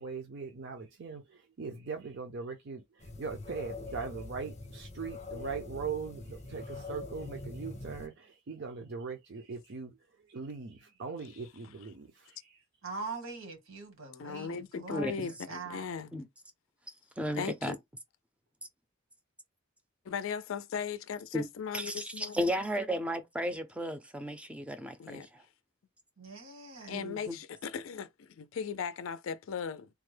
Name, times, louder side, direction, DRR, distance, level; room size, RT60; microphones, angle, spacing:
voice 1, 0.0-10.0 10.3-12.6, right 5 dB, 55° right, 0.5 m, -40 dB
sound 1, 3.0-8.1, left 3 dB, 35° left, 0.7 m, -44 dB
voice 2, 12.8-15.2 15.5-15.9 26.2-27.0, right 3 dB, 80° right, 1.4 m, -42 dB
voice 3, 14.2-16.3 17.3-17.8 20.1-22.4 25.0-25.3 26.9-29.9, left 6 dB, 70° left, 0.4 m, -38 dB
voice 4, 14.9-15.3 16.1-16.2 17.2-17.7 21.3-21.4 21.7-25.3 26.9-27.4, equal, 5° right, 0.5 m, -34 dB
3.5 x 2.1 x 3.2 m
head